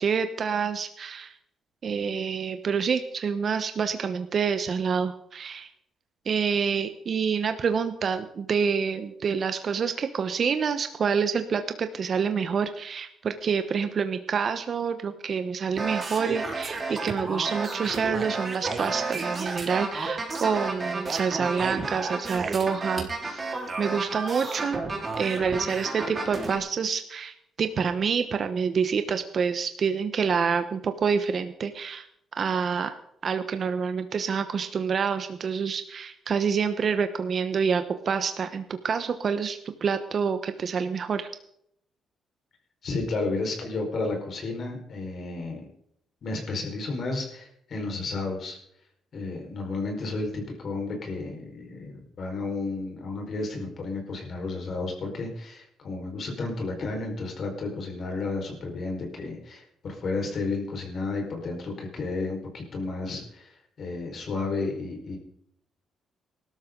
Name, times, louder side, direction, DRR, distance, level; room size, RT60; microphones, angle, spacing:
voice 1, 0.0-1.3 1.8-5.7 6.3-23.5 23.8-24.8 25.2-32.0 32.4-32.9 33.2-41.3, right 6 dB, 50° right, 9 dB, 1.1 m, -27 dB
sound 1, 15.7-26.6, right 3 dB, 30° right, 4.0 m, -32 dB
voice 2, 42.8-45.7 46.2-48.6 49.1-65.2, left 3 dB, 55° left, 2 dB, 4.8 m, -32 dB
19.5 x 13.0 x 3.9 m, 0.72 s
cardioid pair, 90°, 0 cm